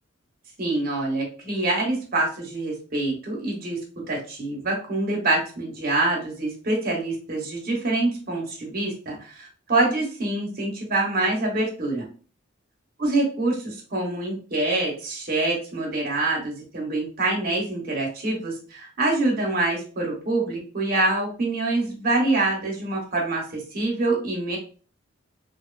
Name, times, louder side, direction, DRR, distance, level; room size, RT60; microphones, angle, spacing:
voice 1, 0.6-3.8 4.1-12.0 13.0-24.6, right 2 dB, 45° right, -2 dB, 0.9 m, -25 dB
2.7 x 2.3 x 2.3 m, 0.38 s
head